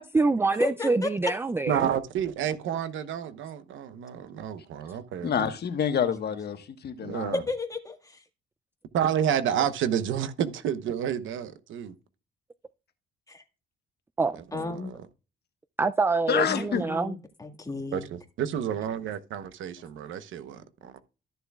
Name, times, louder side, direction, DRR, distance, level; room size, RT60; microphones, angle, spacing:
voice 1, 0.0-1.8 14.2-14.4 15.8-17.2, right 3 dB, 10° right, 0.4 m, -25 dB
voice 2, 0.6-1.1 7.5-8.2 13.3-13.4 14.5-14.9 16.6-18.1, left 3 dB, 15° left, 1.7 m, -34 dB
voice 3, 1.7-5.5 7.0-7.4 8.9-11.9 14.3-15.0 17.9-21.0, right 9 dB, 80° right, 1.0 m, -30 dB
voice 4, 5.2-7.3 16.3-16.8, left 7 dB, 55° left, 1.4 m, -27 dB
13.5 x 6.9 x 2.4 m
cardioid pair, 90°, 20 cm